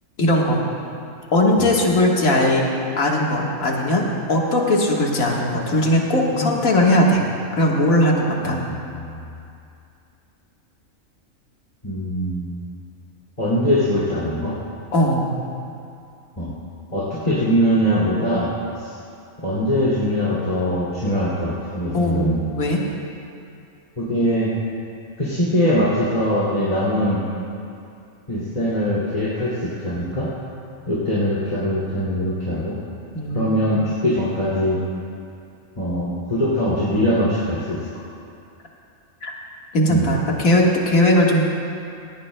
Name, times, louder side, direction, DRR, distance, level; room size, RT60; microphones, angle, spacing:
voice 1, 0.2-0.6 1.3-2.7 3.0-7.2 7.5-8.6 14.9-15.3 21.9-22.8 33.1-33.6 39.2-39.3 39.7-41.4, left 1 dB, 80° left, -1 dB, 1.9 m, -19 dB
voice 2, 8.4-9.1 11.8-12.6 13.4-14.5 16.4-16.5 16.9-18.5 18.8-18.9 19.4-22.5 24.0-24.5 25.2-27.2 28.3-30.3 30.9-32.8 33.3-34.8 35.8-37.8 39.9-40.1, equal, 30° left, -9 dB, 2.6 m, -22 dB
17.5 x 17.5 x 2.2 m, 2.5 s
omnidirectional pair, 1.4 m